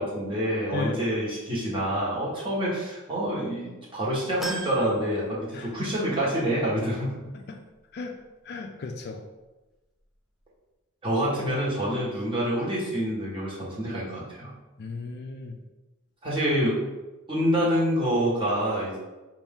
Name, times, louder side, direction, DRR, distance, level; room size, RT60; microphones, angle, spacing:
voice 1, 0.0-7.1 11.0-14.5 16.2-16.8 17.3-19.0, equal, 25° right, -6 dB, 1.3 m, -27 dB
voice 2, 0.7-1.1 5.5-5.9 7.3-7.6 7.9-8.1 8.4-9.2 14.8-15.6, left 3 dB, 50° left, 4 dB, 0.4 m, -35 dB
sound 1, 4.4-6.0 6.5-6.6 7.8-7.9, right 1 dB, ahead, 0.5 m, -37 dB
5.5 x 2.6 x 3.6 m, 1.1 s
head